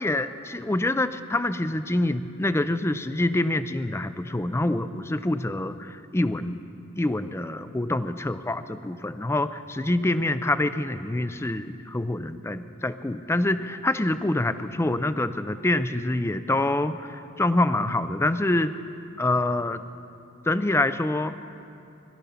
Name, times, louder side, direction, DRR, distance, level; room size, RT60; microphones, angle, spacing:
voice 1, 0.0-6.6 7.0-18.7 19.2-19.8 20.5-21.4, left 2 dB, 15° left, 12 dB, 0.4 m, -26 dB
19.0 x 12.5 x 5.7 m, 2.6 s
head